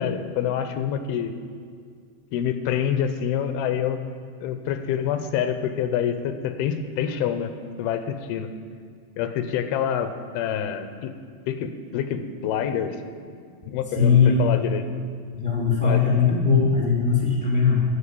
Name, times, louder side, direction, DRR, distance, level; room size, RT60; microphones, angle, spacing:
voice 1, 0.0-1.3 2.3-4.0 4.4-7.5 7.8-8.5 9.2-11.1 11.5-13.0 13.7-14.9 15.8-16.0, left 8 dB, 85° left, 9 dB, 2.6 m, -26 dB
voice 2, 14.0-14.4 15.3-17.8, left 6 dB, 25° right, -3 dB, 1.1 m, -19 dB
14.0 x 4.9 x 8.3 m, 2.1 s
omnidirectional pair, 4.4 m